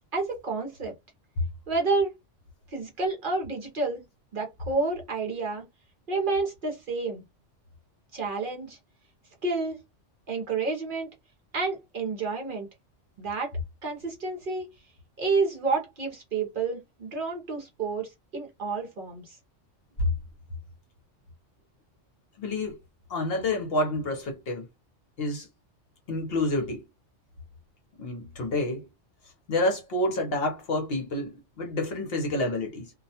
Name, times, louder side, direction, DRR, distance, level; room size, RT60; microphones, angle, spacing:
voice 1, 0.1-0.9 1.7-2.1 2.7-4.0 4.3-5.6 6.1-7.2 8.1-8.8 9.4-9.8 10.3-11.1 11.5-12.7 13.2-13.5 13.8-14.7 15.2-19.4, right 3 dB, 50° right, 0.7 m, -29 dB
voice 2, 22.4-22.8 23.1-24.7 25.2-25.5 26.1-26.8 28.0-28.8 29.5-32.9, left 1 dB, 60° left, 0.8 m, -28 dB
2.3 x 2.1 x 2.7 m
omnidirectional pair, 1.3 m